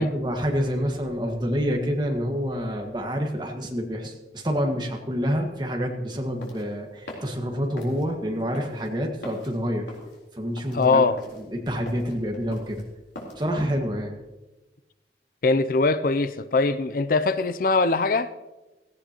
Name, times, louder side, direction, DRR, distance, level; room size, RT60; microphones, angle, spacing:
voice 1, 0.0-9.9 10.3-11.0 11.4-12.8 13.4-14.1, equal, 25° right, 1.6 m, -27 dB
sound 1, 6.2-13.5, left 1 dB, 80° left, 3.8 m, -43 dB
voice 2, 10.7-11.2 15.4-18.3, left 3 dB, 50° left, 0.5 m, -21 dB
17.0 x 15.5 x 3.0 m
head